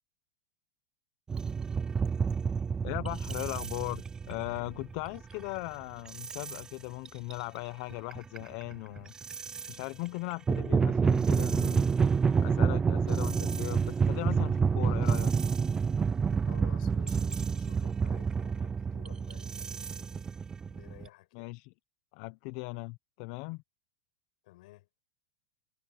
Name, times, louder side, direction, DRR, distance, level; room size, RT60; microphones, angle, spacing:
sound 1, 1.3-5.6 6.1-6.6 7.1-7.4 7.9-9.8 10.3-21.1, right 5 dB, 15° right, 0.3 m, -29 dB
voice 1, 2.8-9.1 9.7-11.9 12.4-15.3 21.3-21.7 22.1-23.6, left 25 dB, 50° left, 0.7 m, -38 dB
voice 2, 16.5-20.3 20.7-21.5 24.4-24.9, left 18 dB, 70° left, 7.0 m, -54 dB
supercardioid pair, 140°, 4 cm